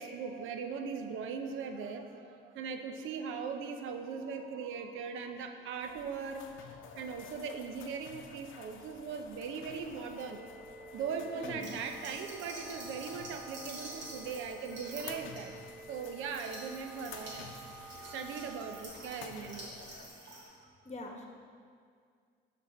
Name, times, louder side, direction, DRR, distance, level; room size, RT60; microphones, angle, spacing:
voice 1, 0.0-10.4 10.9-19.9, right 5 dB, 85° right, 6 dB, 0.7 m, -40 dB
sound 1, 5.8-20.1, left 6 dB, 80° left, 0.7 m, -51 dB
sound 2, 10.2-18.8, right 2 dB, ahead, 0.7 m, -51 dB
voice 2, 11.4-11.8 20.8-21.3, left 2 dB, 35° left, 1 dB, 1.3 m, -44 dB
sound 3, 11.6-20.4, right 1 dB, 65° right, 2.3 m, -49 dB
12.5 x 4.3 x 4.3 m, 2.1 s
cardioid pair, 90°, 20 cm